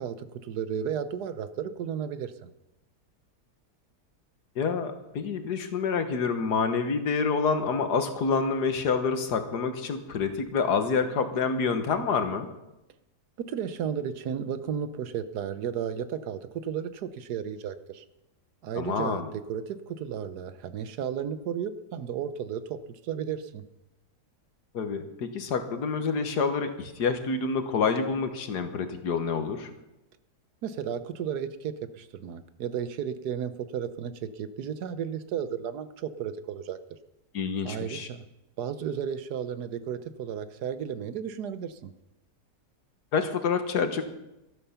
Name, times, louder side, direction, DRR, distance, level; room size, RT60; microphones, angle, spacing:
voice 1, 0.0-2.5 13.4-18.0 18.6-23.6 30.6-36.8 37.6-38.2 38.6-41.9, right 8 dB, 75° right, 13 dB, 1.4 m, -33 dB
voice 2, 4.6-12.5 18.8-19.3 24.7-29.7 37.3-38.1 43.1-44.0, left 5 dB, 75° left, 8 dB, 1.8 m, -27 dB
12.5 x 12.5 x 5.7 m, 0.93 s
omnidirectional pair, 1.7 m